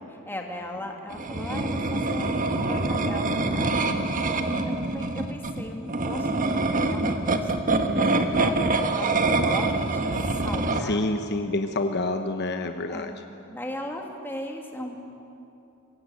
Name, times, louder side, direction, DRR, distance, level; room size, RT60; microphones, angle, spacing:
voice 1, 0.2-4.1 4.4-11.1 12.9-13.2 13.5-15.0, left 1 dB, 10° left, 1 dB, 2.6 m, -38 dB
sound 1, 1.1-10.8, right 2 dB, 40° right, 1.5 m, -25 dB
voice 2, 7.8-8.7 10.8-13.2, left 2 dB, 50° left, 6 dB, 1.0 m, -29 dB
25.5 x 21.5 x 8.4 m, 2.8 s
head